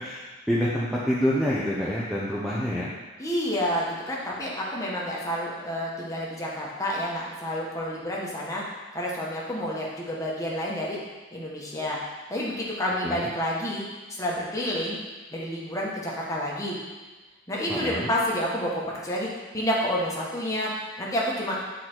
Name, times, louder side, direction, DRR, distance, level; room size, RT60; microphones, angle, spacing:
voice 1, 0.0-2.9 13.0-13.3 17.7-18.1, equal, ahead, -7 dB, 0.7 m, -27 dB
voice 2, 3.2-8.6 8.9-11.0 11.3-12.0 12.3-15.0 15.3-16.7 17.5-20.7 21.0-21.6, equal, 15° left, -5 dB, 1.3 m, -29 dB
8.4 x 4.1 x 4.5 m, 1.3 s
head